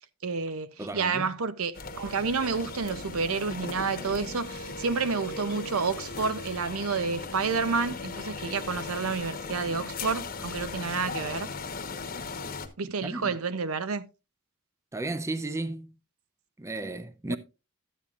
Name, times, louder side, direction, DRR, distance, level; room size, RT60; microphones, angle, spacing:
voice 1, 0.2-11.5 12.8-14.1 17.3-17.4, right 4 dB, 75° right, 0.6 m, -30 dB
voice 2, 0.8-1.3 13.0-13.3 14.9-15.9 16.6-17.4, right 2 dB, 15° right, 0.5 m, -34 dB
sound 1, 1.7-12.7, left 4 dB, 45° left, 1.0 m, -38 dB
12.0 x 8.3 x 2.4 m
head